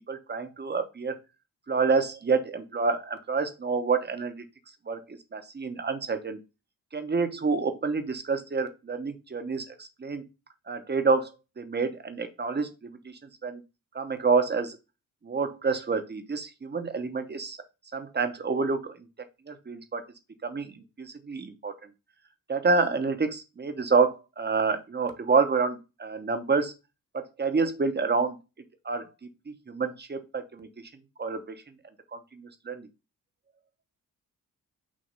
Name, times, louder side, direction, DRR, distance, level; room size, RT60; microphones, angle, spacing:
voice 1, 0.1-1.2 1.7-4.4 4.9-6.4 6.9-10.2 10.7-13.1 13.4-13.6 13.9-14.8 15.2-17.6 17.9-18.9 19.5-20.0 20.4-21.7 22.5-26.7 27.1-28.4 28.8-29.1 29.7-30.7 31.2-31.6 32.1-32.9, right 4 dB, 30° right, 8 dB, 1.1 m, -28 dB
6.3 x 2.8 x 5.6 m, 0.27 s
cardioid pair, 95°, 33 cm